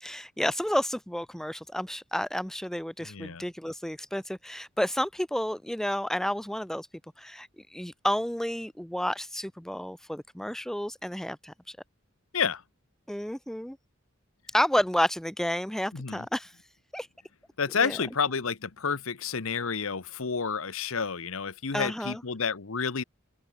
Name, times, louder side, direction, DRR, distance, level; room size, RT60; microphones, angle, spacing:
voice 1, 0.0-6.9 7.2-7.5 7.7-11.8 13.1-13.8 14.5-16.5 16.9-17.1 17.7-18.0 21.7-22.2, equal, ahead, 0.5 m, -30 dB
voice 2, 3.0-3.4 12.3-12.6 15.9-16.2 17.6-23.0, left 5 dB, 80° left, 1.0 m, -30 dB
open air
head